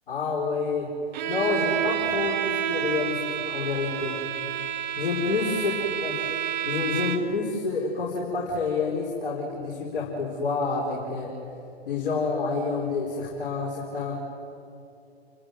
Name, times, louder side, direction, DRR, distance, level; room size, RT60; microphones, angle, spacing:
voice 1, 0.1-0.9 1.2-4.2 5.0-5.7 6.0-6.2 6.6-11.3 11.9-14.1, left 4 dB, 55° left, -5 dB, 4.8 m, -28 dB
Bowed string instrument, 1.1-7.5, right 10 dB, 40° right, 1.3 m, -29 dB
29.5 x 13.5 x 9.5 m, 2.7 s
figure-of-eight pair, 120°, 32 cm